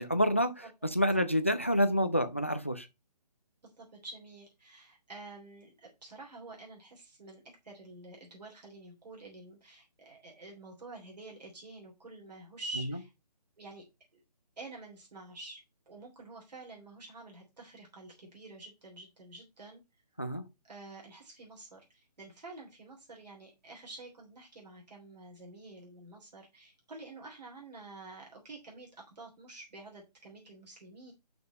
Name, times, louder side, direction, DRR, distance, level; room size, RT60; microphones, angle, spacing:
voice 1, 0.0-2.9 12.9-13.0 20.2-20.4, equal, 20° left, 0.4 m, -28 dB
voice 2, 3.6-13.1 13.6-13.8 14.1-14.2 14.6-19.8 20.7-31.1, right 2 dB, 75° right, 3.3 m, -48 dB
5.9 x 5.2 x 5.0 m
hypercardioid pair, 175°, 21 cm